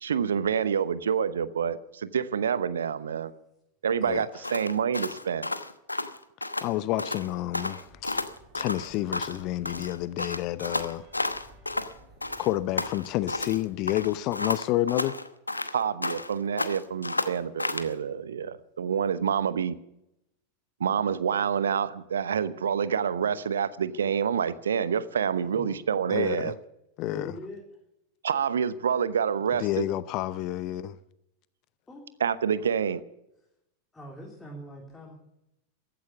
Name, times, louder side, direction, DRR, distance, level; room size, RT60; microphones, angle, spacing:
voice 1, 0.0-3.3 3.8-5.5 15.7-19.8 20.8-26.5 28.2-29.8 32.2-33.0, right 7 dB, 65° right, 0.9 m, -27 dB
sound 1, 4.4-6.7 7.0-7.3 7.5-9.4 9.7-11.9 12.2-13.6 13.9-16.3 16.6-17.9, left 2 dB, 85° left, 1.0 m, -32 dB
voice 2, 6.6-8.2 8.5-11.1 12.4-15.2 26.1-26.5 27.0-27.3 29.6-31.0, left 15 dB, 40° left, 0.6 m, -29 dB
sound 2, 7.8-14.3, right 1 dB, 30° right, 7.1 m, -56 dB
voice 3, 27.1-27.6 31.9-32.1 32.7-32.9 33.9-35.1, equal, 10° left, 3.6 m, -42 dB
15.0 x 13.0 x 7.2 m
figure-of-eight pair, 90°, 0 cm